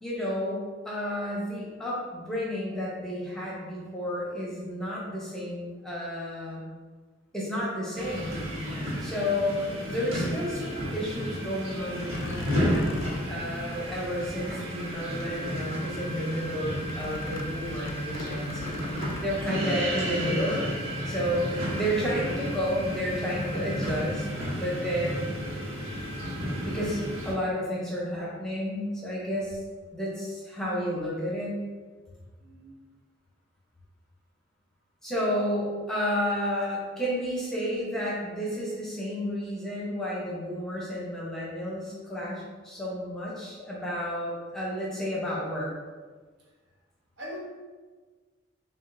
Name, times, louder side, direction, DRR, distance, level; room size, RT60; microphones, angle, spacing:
voice 1, 0.0-6.6 7.3-8.4 9.0-20.6 21.0-25.3 26.6-29.6 29.9-31.6 35.0-45.7, equal, 5° left, -6 dB, 0.9 m, -31 dB
sound 1, 7.9-27.3, equal, 85° right, 1.2 m, -32 dB
sound 2, 12.1-15.1 15.4-16.0 16.9-19.4, left 3 dB, 75° left, 0.4 m, -41 dB
voice 2, 32.4-32.8 35.2-35.5 47.2-47.4, equal, 65° right, -4 dB, 0.9 m, -41 dB
7.1 x 2.4 x 2.6 m, 1.4 s
head